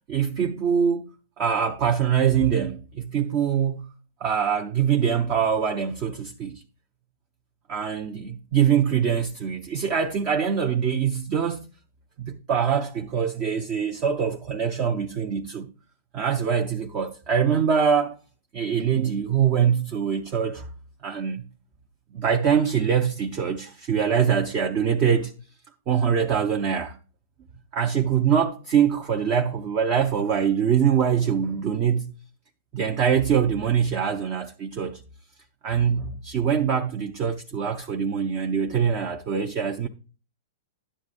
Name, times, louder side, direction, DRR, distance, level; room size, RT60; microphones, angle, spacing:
voice 1, 0.1-1.1 1.4-3.9 4.2-6.6 7.7-11.7 12.2-15.7 16.1-18.2 18.5-20.7 21.0-21.4 22.1-25.3 25.9-26.9 27.7-32.1 32.7-35.0 35.6-39.9, right 7 dB, 30° right, 0.6 m, -23 dB
11.0 x 7.3 x 2.5 m
supercardioid pair, 165°, 0 cm